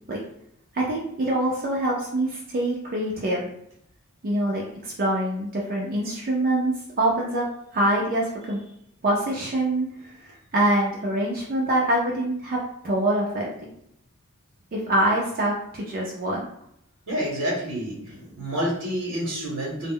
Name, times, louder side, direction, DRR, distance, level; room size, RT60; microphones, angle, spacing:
voice 1, 0.7-3.5 4.2-7.5 7.7-8.6 9.0-10.1 10.5-12.6 12.8-13.5 14.7-16.4, right 1 dB, 40° right, -3 dB, 0.4 m, -24 dB
voice 2, 17.1-19.9, equal, 75° right, -5 dB, 0.8 m, -28 dB
2.0 x 2.0 x 3.6 m, 0.73 s
head